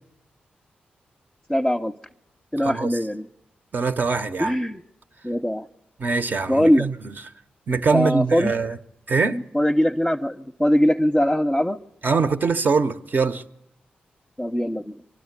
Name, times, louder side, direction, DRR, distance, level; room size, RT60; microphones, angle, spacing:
voice 1, 1.5-1.9 2.5-3.3 4.4-4.8 5.2-5.7 6.5-6.9 7.9-8.5 9.3-11.8 14.4-14.9, equal, 10° left, 0.7 m, -21 dB
voice 2, 3.7-4.6 6.0-7.2 7.7-8.8 9.1-9.4 12.0-13.4, right 4 dB, 55° right, 0.9 m, -23 dB
24.0 x 12.5 x 9.6 m
supercardioid pair, 40°, 4 cm